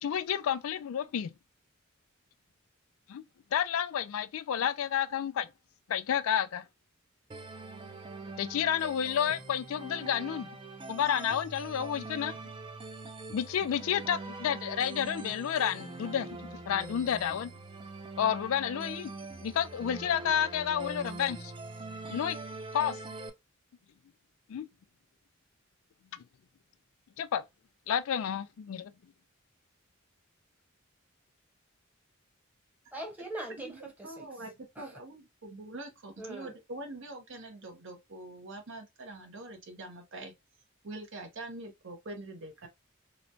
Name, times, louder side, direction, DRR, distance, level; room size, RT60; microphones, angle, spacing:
voice 1, 0.0-1.4 3.1-3.2 3.5-5.5 5.9-6.6 8.4-10.5 10.9-12.4 13.3-17.5 18.2-19.1 19.4-21.5 22.1-22.4 22.7-23.0 24.5-24.7 26.1-26.2 27.2-27.4 27.9-28.9, left 9 dB, 75° left, 0.3 m, -30 dB
sound 1, 7.3-23.3, right 3 dB, 25° right, 0.4 m, -43 dB
voice 2, 32.9-34.2 34.8-34.9 36.2-36.5, right 1 dB, 10° right, 0.9 m, -41 dB
voice 3, 33.6-34.5 34.8-40.3 40.8-42.7, right 2 dB, 65° right, 0.8 m, -44 dB
3.0 x 2.1 x 2.6 m
head